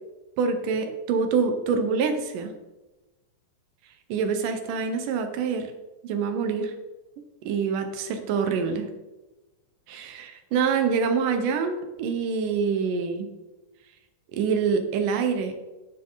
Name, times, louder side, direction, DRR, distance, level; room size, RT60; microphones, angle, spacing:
voice 1, 0.4-2.5 4.1-5.7 6.0-6.7 7.5-8.9 9.9-13.3 14.3-15.5, right 5 dB, 70° right, 6 dB, 2.5 m, -26 dB
10.0 x 9.4 x 4.0 m, 1.1 s
omnidirectional pair, 4.2 m